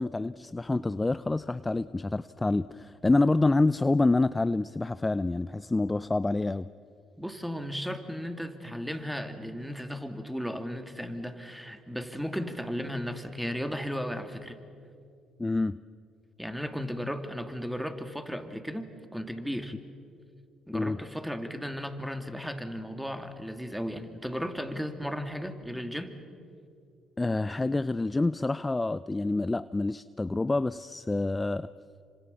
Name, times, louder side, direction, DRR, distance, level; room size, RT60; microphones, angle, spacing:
voice 1, 0.0-6.7 15.4-15.8 20.7-21.0 27.2-31.7, left 2 dB, 20° left, 15 dB, 0.5 m, -27 dB
voice 2, 7.2-14.6 16.4-19.7 20.7-26.1, equal, ahead, 7 dB, 2.6 m, -35 dB
28.0 x 25.5 x 7.0 m, 2.4 s
hypercardioid pair, 60°, 0 cm